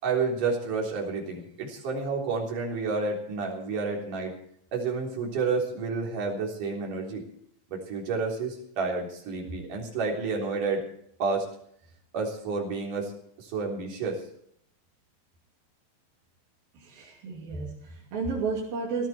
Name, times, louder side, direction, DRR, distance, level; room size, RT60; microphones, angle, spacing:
voice 1, 0.0-4.3 4.7-7.2 7.7-10.8 11.2-11.5 12.1-13.1 13.4-14.2, right 4 dB, 60° right, -1 dB, 5.2 m, -30 dB
voice 2, 16.8-19.1, right 4 dB, 75° right, -4 dB, 4.6 m, -32 dB
18.5 x 14.5 x 4.4 m, 0.68 s
omnidirectional pair, 4.1 m